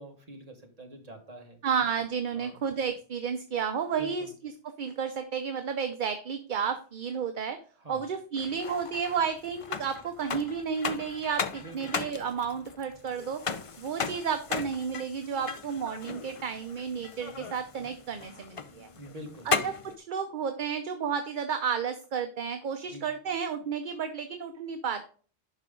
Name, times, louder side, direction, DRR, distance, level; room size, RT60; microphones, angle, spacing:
voice 1, 0.0-1.6 2.3-2.6 4.0-4.3 7.8-8.1 11.6-12.0 18.9-19.5 22.8-23.0, right 1 dB, 35° right, 3 dB, 1.6 m, -45 dB
voice 2, 1.6-4.5 4.8-7.6 7.9-13.4 13.8-18.9 19.4-25.1, right 7 dB, 55° right, 8 dB, 0.8 m, -32 dB
sound 1, 8.4-20.0, left 5 dB, 40° left, 0.5 m, -37 dB
11.0 x 4.9 x 3.7 m, 0.41 s
omnidirectional pair, 1.1 m